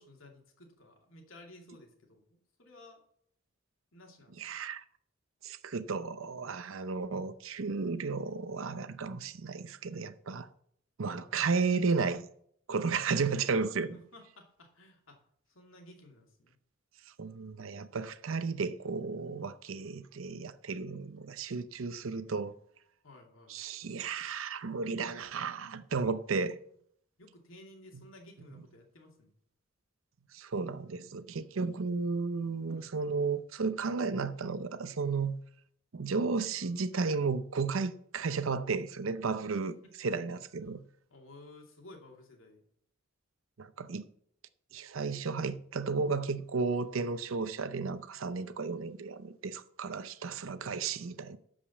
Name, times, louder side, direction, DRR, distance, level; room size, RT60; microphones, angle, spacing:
voice 1, 0.0-3.0 3.9-4.6 11.0-11.4 13.9-15.2 15.5-16.6 23.0-23.6 27.2-29.3 32.7-33.0 39.6-39.9 41.1-42.6, left 1 dB, 90° left, 2.6 m, -55 dB
voice 2, 4.4-4.8 5.4-10.5 11.0-12.3 12.7-14.0 17.2-22.5 23.5-26.6 30.3-35.4 35.9-39.7 40.0-40.8 43.6-44.1 44.7-51.4, right 4 dB, 90° right, 0.6 m, -33 dB
12.5 x 5.2 x 7.1 m
head